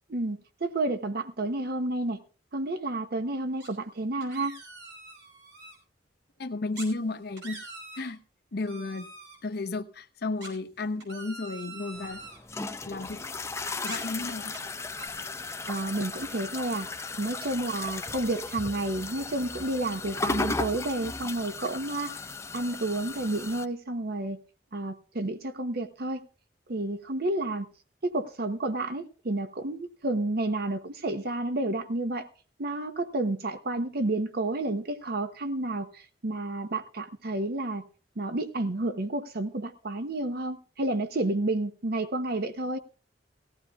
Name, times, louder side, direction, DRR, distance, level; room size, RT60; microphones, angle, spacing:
voice 1, 0.1-2.2 2.5-4.6 15.7-16.9 17.2-22.1 22.5-24.4 24.7-26.2 26.7-27.7 28.0-32.3 32.6-37.8 38.2-42.8, right 2 dB, 55° right, 0.8 m, -30 dB
sound 1, 3.6-3.9 4.2-5.8 6.7-6.9 7.2-8.1 8.7-9.4 10.4-12.4 13.8-14.6 15.0-15.1, right 2 dB, 75° right, 5.2 m, -44 dB
voice 2, 6.4-7.6 8.0-8.2 8.5-9.1 9.4-12.2 12.9-13.2 13.8-14.5, left 3 dB, 60° left, 0.7 m, -33 dB
sound 2, 11.9-23.6, left 3 dB, 15° left, 0.5 m, -36 dB
18.0 x 15.0 x 2.3 m
head